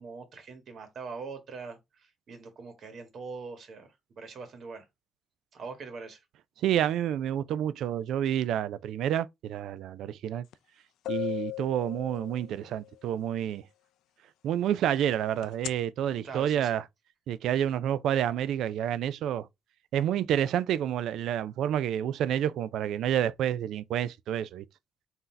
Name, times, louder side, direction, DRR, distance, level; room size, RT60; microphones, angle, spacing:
voice 1, 0.0-3.9 4.2-4.8 5.5-6.2 16.2-16.8, right 4 dB, 55° right, 1.4 m, -42 dB
voice 2, 6.6-10.5 11.1-13.6 14.4-16.8 17.3-19.5 19.9-24.6, right 10 dB, 80° right, 0.3 m, -29 dB
sound 1, 10.5-10.6 11.0-12.8 15.4-15.7, left 17 dB, 85° left, 0.3 m, -36 dB
3.8 x 2.7 x 4.3 m
cardioid pair, 90°, 0 cm